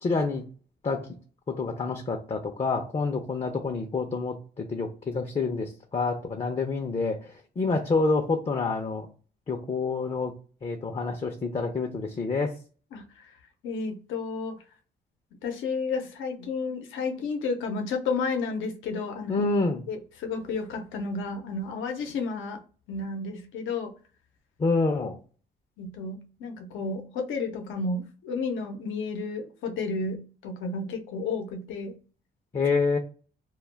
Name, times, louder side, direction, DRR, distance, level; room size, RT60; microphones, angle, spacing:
voice 1, 0.0-0.5 0.8-1.1 1.5-7.3 7.6-9.1 9.5-10.3 10.6-12.5 19.3-19.8 24.6-25.2 32.5-33.0, left 3 dB, 30° left, 3 dB, 0.5 m, -27 dB
voice 2, 12.9-13.3 13.6-14.6 15.4-19.5 19.9-22.6 22.9-23.9 25.8-31.9, left 4 dB, 85° left, 4 dB, 0.7 m, -32 dB
2.2 x 2.1 x 3.2 m, 0.38 s
cardioid pair, 90°, 20 cm